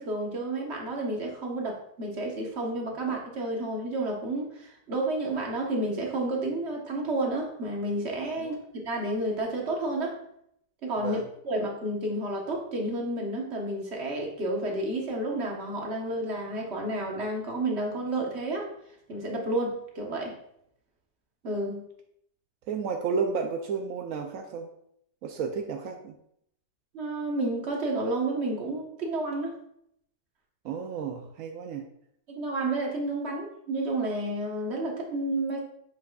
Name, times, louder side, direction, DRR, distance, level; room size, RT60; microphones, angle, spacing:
voice 1, 0.0-10.2 10.8-18.7 19.1-20.4 21.4-21.8 26.9-29.6 32.3-35.7, right 2 dB, 40° right, 0 dB, 1.3 m, -31 dB
voice 2, 22.7-24.7 25.2-26.1 30.6-31.9, right 5 dB, 70° right, 3 dB, 0.8 m, -32 dB
7.4 x 5.7 x 2.4 m, 0.73 s
omnidirectional pair, 1.9 m